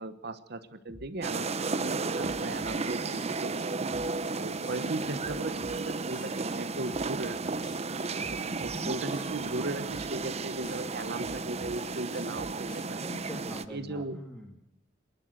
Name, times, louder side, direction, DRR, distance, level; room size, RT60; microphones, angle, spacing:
voice 1, 0.0-1.5 1.8-3.7 4.3-7.8 8.3-13.0 13.7-14.2, right 2 dB, 55° right, 12 dB, 1.2 m, -37 dB
sound 1, 0.9-1.3 1.6-2.8 3.1-3.6 3.9-4.3 4.6-5.8 6.1-6.6 6.9-7.3 7.6-8.8 9.1-9.6 9.9-10.3 10.6-11.8 12.1-12.9, left 1 dB, 25° left, 1.7 m, -49 dB
sound 2, 1.2-13.7, right 3 dB, 35° right, 0.8 m, -33 dB
voice 2, 13.0-14.6, equal, 5° left, 0 dB, 2.1 m, -43 dB
27.0 x 11.5 x 8.1 m, 0.80 s
head